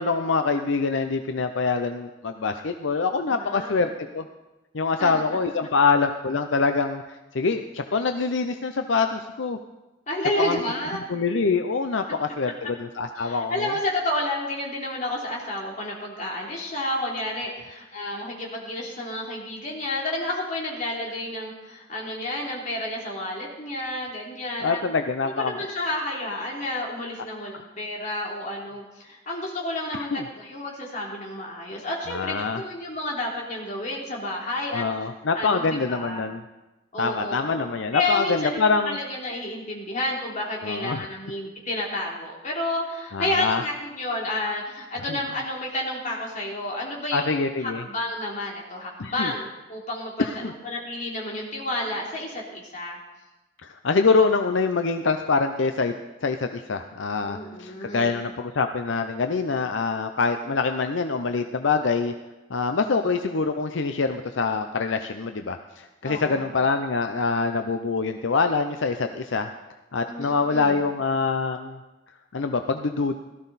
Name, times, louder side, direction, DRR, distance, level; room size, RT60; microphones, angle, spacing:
voice 1, 0.0-4.3 4.7-9.6 10.4-10.6 11.1-13.7 24.6-25.5 29.9-30.2 32.1-32.6 34.7-36.4 37.0-39.0 40.6-41.1 43.1-43.6 45.1-45.2 47.1-47.8 49.0-49.3 50.2-50.5 53.6-55.9 56.2-62.1 62.5-69.5 69.9-71.8 72.3-73.2, left 4 dB, 75° left, 7 dB, 0.6 m, -25 dB
voice 2, 3.3-3.9 5.0-5.2 10.1-11.0 13.2-24.8 25.2-35.1 35.3-36.2 36.9-37.7 37.9-53.0 57.3-58.1 66.0-66.5 70.1-70.8, left 1 dB, 40° left, -3 dB, 3.1 m, -30 dB
17.0 x 13.5 x 4.1 m, 1.1 s
head